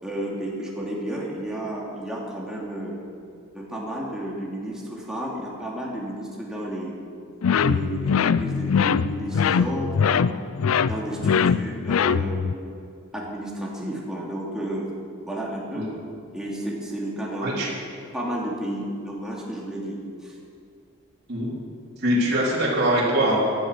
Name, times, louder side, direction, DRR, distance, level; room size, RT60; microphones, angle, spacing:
voice 1, 0.0-3.0 3.5-7.0 7.5-10.2 10.8-12.6 13.1-14.9 15.2-15.9 16.3-17.5 18.1-20.3, right 1 dB, 5° right, -4 dB, 2.8 m, -32 dB
sound 1, 7.4-12.6, left 6 dB, 85° left, 0.4 m, -22 dB
voice 2, 22.0-23.4, right 1 dB, 50° right, -7 dB, 3.9 m, -23 dB
15.0 x 12.0 x 6.3 m, 2.4 s
head